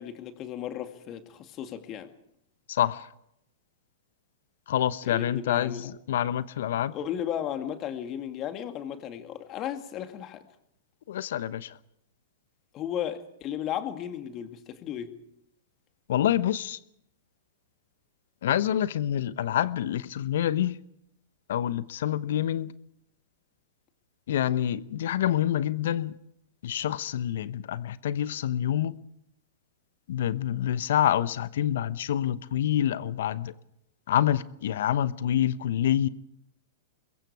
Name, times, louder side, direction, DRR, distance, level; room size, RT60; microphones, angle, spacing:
voice 1, 0.0-2.1 5.0-5.8 6.9-10.4 12.7-15.1, left 10 dB, 35° left, 2.3 m, -35 dB
voice 2, 2.7-3.1 4.7-6.9 11.1-11.8 16.1-16.8 18.4-20.8 21.5-22.7 24.3-26.1 26.6-28.9 30.1-33.5 34.1-36.1, left 11 dB, 65° left, 1.0 m, -27 dB
28.0 x 22.0 x 4.8 m
hypercardioid pair, 105°, 0 cm